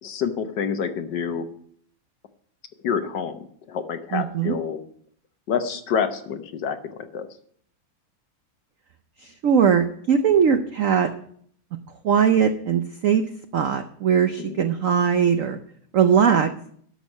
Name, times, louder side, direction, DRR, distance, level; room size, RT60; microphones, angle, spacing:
voice 1, 0.0-1.5 2.8-4.8 5.5-7.3 14.4-14.6, left 7 dB, 65° left, 8 dB, 1.5 m, -28 dB
voice 2, 4.1-4.6 9.2-11.1 12.0-13.2 13.5-15.6 15.9-16.5, right 7 dB, 70° right, 8 dB, 0.7 m, -20 dB
11.5 x 6.3 x 6.3 m, 0.62 s
omnidirectional pair, 2.2 m